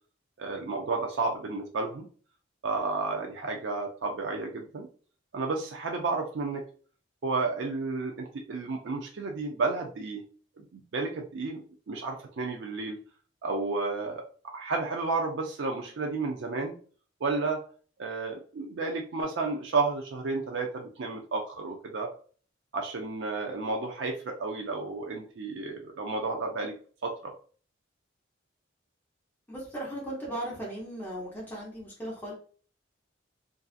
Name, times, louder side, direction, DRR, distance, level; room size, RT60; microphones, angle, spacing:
voice 1, 0.4-2.1 2.6-4.9 5.3-6.6 7.2-10.2 10.6-13.0 13.4-16.7 17.2-17.6 18.0-22.1 22.7-26.7 27.0-27.3, right 3 dB, 65° right, 2 dB, 0.4 m, -32 dB
voice 2, 29.5-32.3, right 1 dB, 10° left, -5 dB, 0.7 m, -37 dB
2.6 x 2.3 x 2.4 m, 0.42 s
head